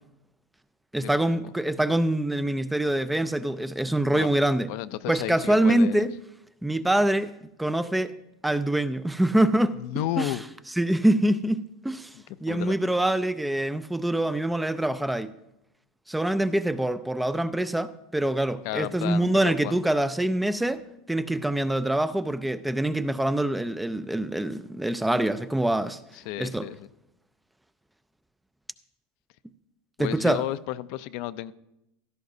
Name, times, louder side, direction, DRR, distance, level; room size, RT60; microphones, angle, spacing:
voice 1, 0.9-4.7 5.1-6.1 6.6-7.3 7.6-8.1 8.4-9.8 10.2-10.3 10.8-12.1 12.4-15.3 16.1-20.8 21.1-26.0 26.4-26.7 30.0-30.4, right 1 dB, 5° right, 0.4 m, -25 dB
voice 2, 4.7-6.1 9.7-10.4 12.1-12.8 18.6-19.8 26.1-26.9 30.0-31.5, left 14 dB, 60° left, 0.4 m, -33 dB
16.0 x 13.0 x 2.7 m
supercardioid pair, 150°, 0 cm